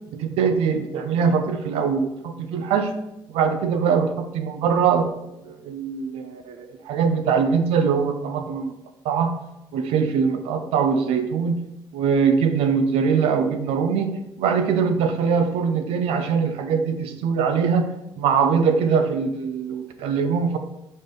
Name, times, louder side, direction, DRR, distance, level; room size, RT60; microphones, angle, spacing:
voice 1, 0.1-2.9 3.3-5.1 5.5-8.7 9.0-9.4 9.7-11.7 11.9-17.9 18.2-20.6, right 6 dB, 75° right, 6 dB, 0.6 m, -22 dB
4.9 x 4.4 x 5.3 m, 0.87 s
hypercardioid pair, 55°, 10 cm